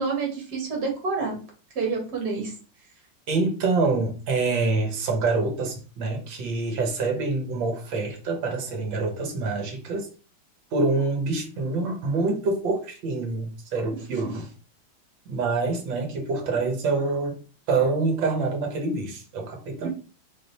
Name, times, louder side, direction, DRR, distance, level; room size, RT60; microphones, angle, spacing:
voice 1, 0.0-1.3 1.8-2.5 14.1-14.3 19.8-19.9, right 4 dB, 50° right, 2.1 m, -28 dB
voice 2, 3.3-10.1 10.7-14.5 15.3-17.4 17.7-19.9, right 3 dB, 65° right, 1.7 m, -26 dB
3.8 x 3.4 x 4.0 m
omnidirectional pair, 2.4 m